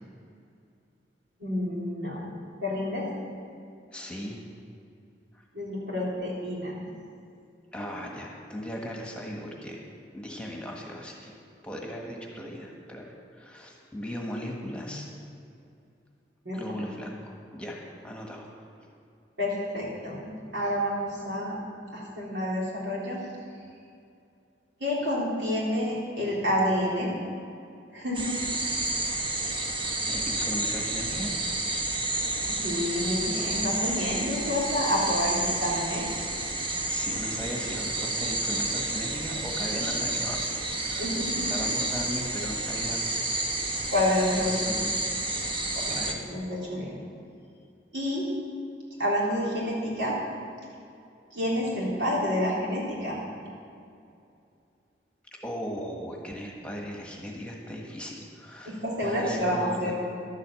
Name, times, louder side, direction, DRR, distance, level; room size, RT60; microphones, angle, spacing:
voice 1, 1.4-2.3 2.6-3.1 5.5-6.7 16.5-16.6 19.4-21.6 21.9-23.2 24.8-27.1 27.9-28.3 32.4-36.0 39.8-39.9 41.0-41.5 43.9-44.5 45.7-46.0 46.3-47.0 47.9-48.3 49.0-50.2 51.3-53.2 58.7-59.9, left 1 dB, 80° right, -5 dB, 3.7 m, -29 dB
voice 2, 3.9-4.4 5.3-5.4 7.7-9.8 10.1-11.3 11.6-15.1 16.5-18.5 18.8-18.9 30.1-31.3 36.9-41.2 41.4-43.1 44.4-44.9 45.9-46.2 55.4-59.9, equal, 5° left, -1 dB, 1.4 m, -37 dB
sound 1, 28.1-46.1, right 2 dB, 30° right, 1.0 m, -30 dB
11.5 x 7.9 x 7.6 m, 2.5 s
head